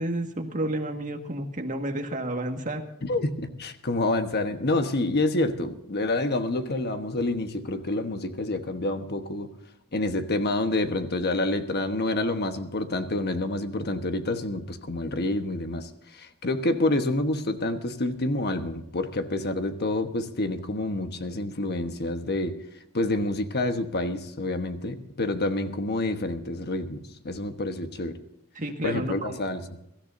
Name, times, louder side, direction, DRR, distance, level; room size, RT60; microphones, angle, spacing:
voice 1, 0.0-2.8 28.6-29.4, right 1 dB, 35° right, 4 dB, 1.8 m, -31 dB
voice 2, 3.0-9.5 9.9-22.6 22.9-28.2 28.8-29.6, left 2 dB, 50° left, 7 dB, 1.2 m, -28 dB
23.5 x 13.5 x 2.7 m, 0.85 s
head